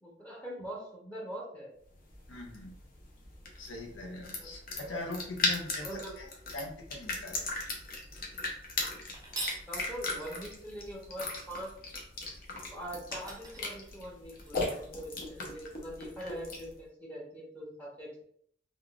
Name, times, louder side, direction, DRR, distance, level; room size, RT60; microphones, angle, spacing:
voice 1, 0.0-1.7 4.4-4.5 4.8-5.0 5.8-6.2 9.7-11.7 12.7-18.2, right 1 dB, 10° left, -5 dB, 0.8 m, -43 dB
sound 1, 1.9-16.8, left 2 dB, 50° left, 0.7 m, -38 dB
voice 2, 2.3-2.8 3.6-7.4, left 2 dB, 90° left, 2 dB, 0.7 m, -41 dB
sound 2, 9.1-9.7 12.6-12.7 13.1-14.5, right 3 dB, 20° right, 0.5 m, -41 dB
3.6 x 2.3 x 2.3 m, 0.64 s
head